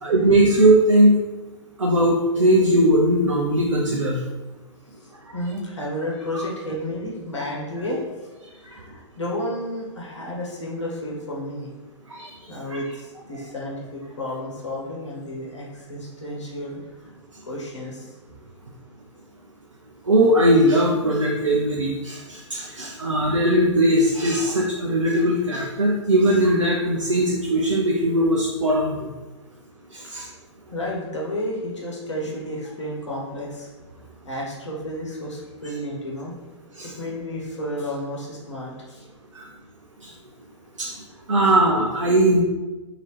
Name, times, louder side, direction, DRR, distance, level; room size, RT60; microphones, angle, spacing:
voice 1, 0.0-1.2 1.8-4.2 6.3-6.4 8.7-8.8 12.1-12.3 12.7-12.8 13.3-13.4 20.1-29.1 29.9-30.3 36.8-36.9 39.3-39.4 40.0-40.1 40.8-40.9 41.3-42.4, right 1 dB, 80° right, -3 dB, 0.5 m, -19 dB
voice 2, 5.3-8.0 8.7-11.7 12.5-16.8 17.5-18.1 30.0-30.1 30.7-33.7 34.2-36.3 37.0-39.1, left 1 dB, 70° left, -3 dB, 1.0 m, -31 dB
2.8 x 2.8 x 3.2 m, 1.2 s
figure-of-eight pair, 115°, 16 cm